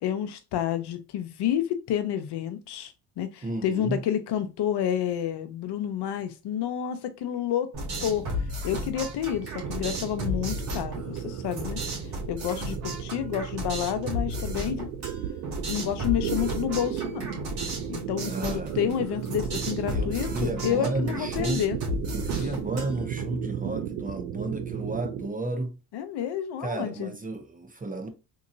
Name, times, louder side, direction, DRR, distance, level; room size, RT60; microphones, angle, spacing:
voice 1, 0.0-7.7 8.0-8.3 8.6-11.8 12.3-14.9 15.7-17.4 17.9-21.8 22.3-22.5 25.9-27.1, left 10 dB, 60° left, 0.7 m, -29 dB
voice 2, 3.4-4.0 18.2-18.8 19.9-21.6 22.1-25.8 26.6-28.1, right 2 dB, 20° right, 0.7 m, -32 dB
sound 1, 7.7-23.2, equal, 55° right, 2.0 m, -34 dB
sound 2, 9.2-25.3, right 9 dB, 75° right, 0.7 m, -35 dB
3.7 x 2.9 x 2.6 m
supercardioid pair, 75°, 46 cm